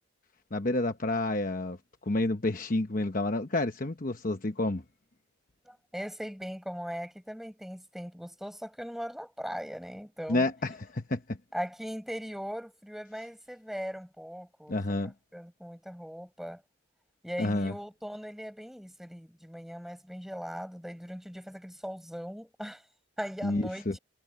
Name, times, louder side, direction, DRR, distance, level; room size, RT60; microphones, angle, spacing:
voice 1, 0.5-1.8 2.1-4.8 10.3-11.2 14.7-15.1 17.4-17.7 23.4-23.9, left 2 dB, 40° left, 1.0 m, -29 dB
voice 2, 5.6-10.5 11.5-14.8 15.3-16.6 17.2-22.8 23.2-24.0, equal, ahead, 6.6 m, -39 dB
head